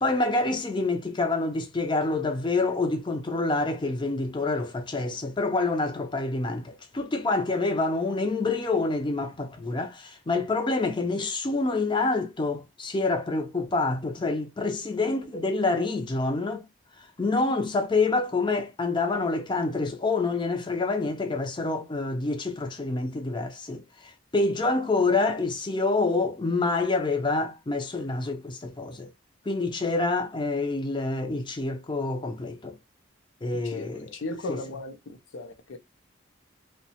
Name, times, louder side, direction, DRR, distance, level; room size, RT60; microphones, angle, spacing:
voice 1, 0.0-16.7 17.2-29.1 29.5-32.8 33.4-34.1 34.4-34.7, left 3 dB, 25° left, 0.4 m, -27 dB
voice 2, 34.2-35.0 35.3-35.8, left 2 dB, 80° left, 0.5 m, -35 dB
2.8 x 2.2 x 2.7 m
head